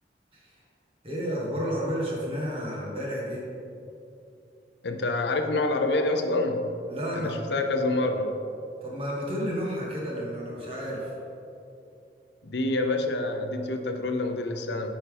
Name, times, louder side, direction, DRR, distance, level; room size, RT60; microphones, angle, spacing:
voice 1, 1.0-3.4 6.9-7.6 8.8-11.2, equal, 30° right, -5 dB, 1.6 m, -31 dB
voice 2, 4.8-6.7 7.1-8.4 12.4-14.9, left 2 dB, 75° left, 5 dB, 0.6 m, -27 dB
8.7 x 5.7 x 3.4 m, 2.7 s
head